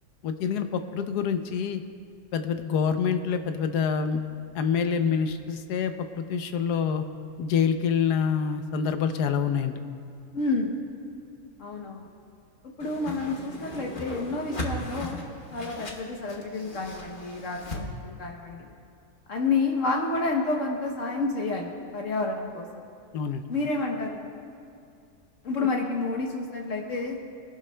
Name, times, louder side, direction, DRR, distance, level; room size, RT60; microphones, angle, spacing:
voice 1, 0.2-1.8 2.3-4.2 4.5-7.0 7.4-9.8 23.1-23.4, left 6 dB, 80° left, 8 dB, 1.2 m, -26 dB
voice 2, 10.3-10.8 11.6-12.1 12.8-15.2 15.5-18.7 19.3-22.9 23.5-24.3 25.4-27.2, left 3 dB, 60° left, 0 dB, 1.1 m, -29 dB
Whoosh swoosh swish, 12.8-17.8, left 1 dB, 35° left, 1.2 m, -37 dB
22.5 x 11.5 x 2.2 m, 2.4 s
omnidirectional pair, 1.7 m